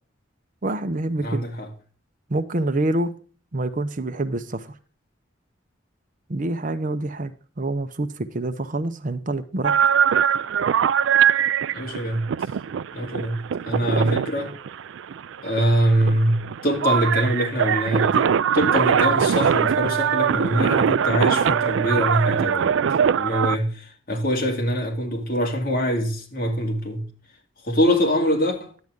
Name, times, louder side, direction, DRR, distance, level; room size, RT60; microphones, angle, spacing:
voice 1, 0.6-1.4 2.3-3.1 3.5-4.7 6.3-9.8, right 2 dB, 45° right, 0.7 m, -26 dB
voice 2, 1.2-1.7 11.7-12.5 12.9-14.5 15.4-22.8 23.1-27.1 27.6-28.7, equal, 45° left, 2.4 m, -24 dB
sound 1, 9.6-23.6, right 8 dB, 70° right, 0.3 m, -22 dB
10.5 x 8.0 x 3.6 m
head